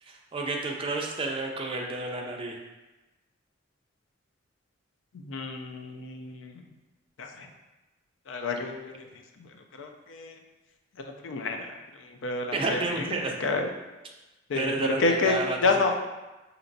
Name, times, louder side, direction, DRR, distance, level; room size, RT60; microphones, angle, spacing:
voice 1, 0.0-2.6 12.5-13.4 14.5-15.9, right 2 dB, 30° right, 1 dB, 0.4 m, -31 dB
voice 2, 5.2-6.5 7.2-7.5 8.3-9.0 9.8-10.3 11.2-11.7 12.2-12.8 13.4-13.6 14.5-14.7 15.0-15.4 15.6-15.9, left 3 dB, 70° left, 4 dB, 0.4 m, -28 dB
4.2 x 2.9 x 2.6 m, 1.1 s
head